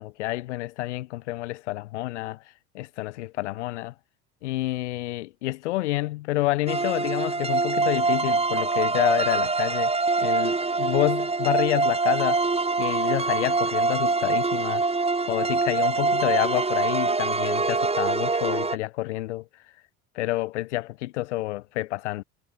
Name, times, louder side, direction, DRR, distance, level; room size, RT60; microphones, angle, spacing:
voice 1, 0.0-2.4 2.7-3.9 4.4-9.9 10.2-12.5 12.8-14.8 15.3-19.6 20.1-22.2, left 18 dB, 90° left, 3.1 m, -28 dB
sound 1, 6.7-18.8, right 3 dB, 15° right, 3.6 m, -24 dB
supercardioid pair, 80°, 34 cm